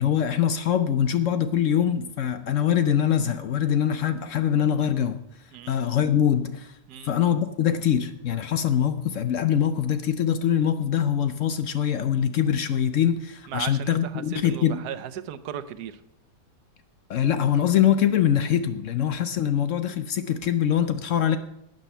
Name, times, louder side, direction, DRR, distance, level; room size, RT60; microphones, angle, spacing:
voice 1, 0.0-5.2 5.7-6.8 7.0-14.8 17.1-21.4, left 9 dB, 65° left, 10 dB, 0.8 m, -23 dB
voice 2, 13.5-16.0, right 9 dB, 80° right, 13 dB, 1.3 m, -36 dB
12.0 x 8.9 x 5.5 m, 0.82 s
omnidirectional pair, 1.7 m